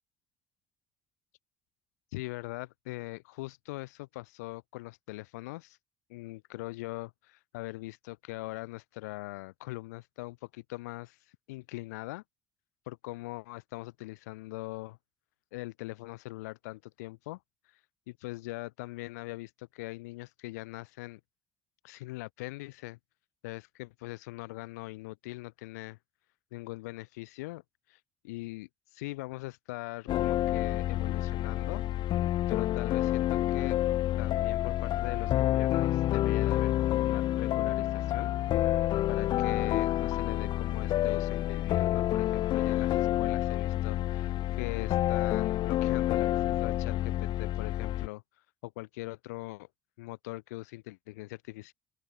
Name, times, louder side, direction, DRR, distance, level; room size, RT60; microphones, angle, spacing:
voice 1, 2.1-5.8 6.1-11.2 11.5-12.2 12.9-15.0 15.5-17.4 17.7-17.8 18.1-21.2 21.8-23.0 23.4-26.0 26.5-27.6 27.9-28.0 28.2-31.8 32.5-33.8 34.2-38.3 39.1-48.2 48.6-49.7 50.0-51.7, left 21 dB, 90° left, 3.7 m, -41 dB
sound 1, 30.1-48.1, left 13 dB, 65° left, 0.6 m, -28 dB
open air
hypercardioid pair, 60°, 9 cm